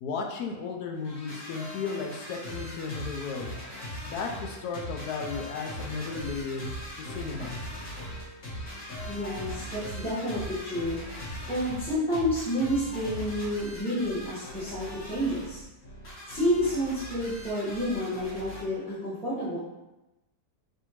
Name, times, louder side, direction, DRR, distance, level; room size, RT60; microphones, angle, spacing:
voice 1, 0.0-3.6 4.0-7.6, left 4 dB, 75° left, 1 dB, 1.0 m, -35 dB
sound 1, 0.9-18.6, equal, 50° left, 1.6 m, -40 dB
voice 2, 9.0-11.0 11.5-15.6 16.3-19.6, equal, 5° left, -12 dB, 0.9 m, -29 dB
5.5 x 2.7 x 2.9 m, 0.99 s
omnidirectional pair, 1.8 m